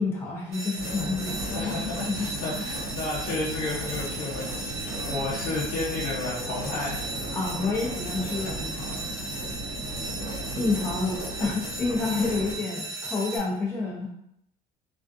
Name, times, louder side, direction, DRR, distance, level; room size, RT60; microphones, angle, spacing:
voice 1, 0.0-1.7 2.1-2.3 7.3-9.0 9.3-9.4 10.5-14.1, left 3 dB, 15° left, -4 dB, 0.5 m, -29 dB
sound 1, 0.5-13.4, right 2 dB, 20° right, 1.1 m, -36 dB
sound 2, 0.8-12.6, right 1 dB, 50° right, 1.0 m, -36 dB
voice 2, 1.4-7.1 9.8-10.2, left 3 dB, 55° left, -6 dB, 0.7 m, -32 dB
2.4 x 2.3 x 2.5 m, 0.74 s
cardioid pair, 180°, 16 cm